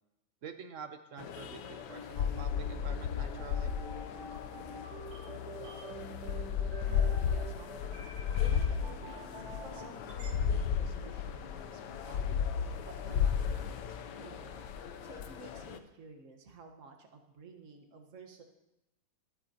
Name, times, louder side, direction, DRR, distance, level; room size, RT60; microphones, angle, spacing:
voice 1, 0.4-3.7, right 6 dB, 65° right, 8 dB, 0.8 m, -47 dB
sound 1, 1.2-15.8, left 8 dB, 70° left, 1.3 m, -34 dB
sound 2, 1.9-10.3, right 2 dB, 80° right, 2.3 m, -47 dB
voice 2, 6.8-18.4, right 3 dB, 45° right, 3 dB, 1.5 m, -53 dB
sound 3, 9.0-10.5, left 4 dB, 90° left, 2.1 m, -58 dB
24.5 x 8.7 x 2.8 m, 0.93 s
omnidirectional pair, 2.0 m